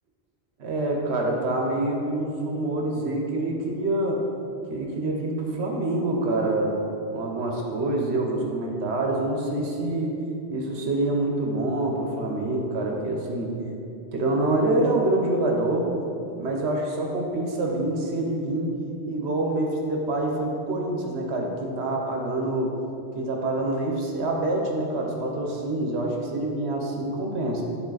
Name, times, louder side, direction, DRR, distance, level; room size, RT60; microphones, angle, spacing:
voice 1, 0.6-4.2 4.7-6.7 7.1-10.1 10.5-13.5 14.1-15.9 16.4-18.8 19.1-22.8 23.1-27.6, right 2 dB, 75° right, 0 dB, 1.2 m, -26 dB
8.8 x 3.7 x 4.0 m, 2.7 s
omnidirectional pair, 1.1 m